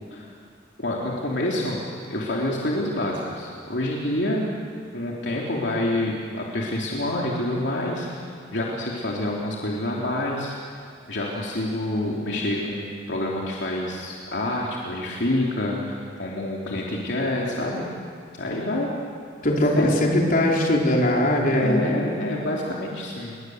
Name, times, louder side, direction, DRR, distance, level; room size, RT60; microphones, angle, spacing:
voice 1, 0.8-1.8 2.1-4.4 4.9-8.3 8.5-10.6 11.1-17.9 18.4-18.9 19.8-20.0 21.5-23.4, left 1 dB, 65° left, -3 dB, 3.5 m, -27 dB
voice 2, 19.4-21.9, left 1 dB, 50° left, -1 dB, 4.5 m, -20 dB
29.0 x 23.0 x 8.0 m, 2.2 s
head